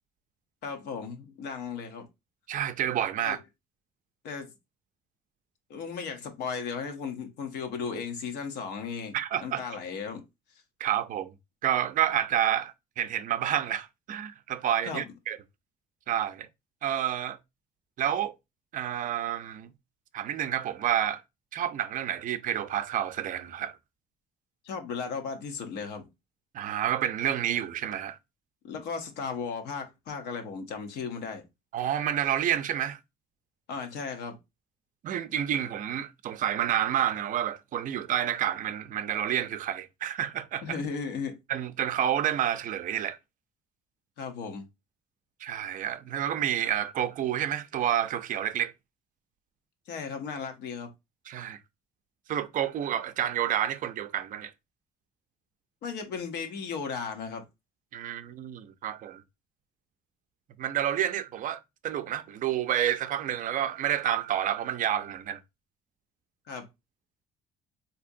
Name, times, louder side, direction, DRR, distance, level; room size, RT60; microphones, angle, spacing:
voice 1, 0.6-2.1 3.2-3.4 4.2-4.5 5.7-9.2 9.4-10.2 14.8-15.0 24.6-26.1 28.6-31.4 33.7-34.4 40.6-41.4 44.2-44.6 49.9-50.9 55.8-57.4 66.5-66.7, left 5 dB, 80° left, 0.9 m, -35 dB
voice 2, 2.5-3.4 9.1-9.6 10.8-11.3 11.6-15.4 16.1-16.5 16.8-17.4 18.0-18.3 18.7-19.7 20.1-21.2 21.5-23.8 26.5-28.2 31.7-33.0 35.0-40.8 41.5-43.2 45.4-48.7 51.3-51.6 52.3-54.5 57.9-59.2 60.6-65.4, right 10 dB, 50° right, 0.4 m, -29 dB
3.6 x 2.7 x 2.6 m
cardioid pair, 110°, 17 cm